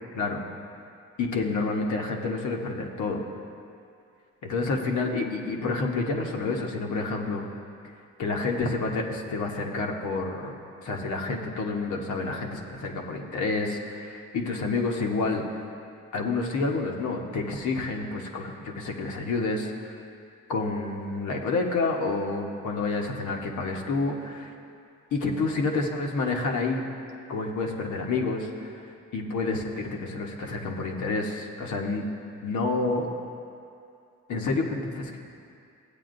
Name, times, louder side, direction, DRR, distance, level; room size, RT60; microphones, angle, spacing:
voice 1, 1.2-3.2 4.4-7.4 8.2-10.5 10.8-15.6 16.1-19.9 20.5-24.5 25.1-26.8 27.3-32.1 32.4-33.1 34.3-35.2, left 3 dB, 70° left, 1 dB, 1.1 m, -29 dB
15.0 x 8.4 x 2.6 m, 2.5 s
cardioid pair, 90°, 30 cm